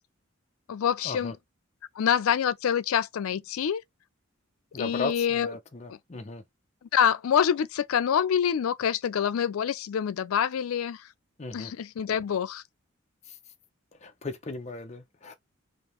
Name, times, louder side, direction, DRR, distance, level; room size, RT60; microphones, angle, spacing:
voice 1, 0.7-1.4 2.0-3.8 4.8-5.5 5.9-6.0 6.8-11.1 11.5-12.6, left 8 dB, 85° left, 0.4 m, -26 dB
voice 2, 4.7-6.4 11.4-11.7 14.0-15.3, left 3 dB, 30° left, 0.5 m, -36 dB
5.0 x 2.7 x 2.9 m
head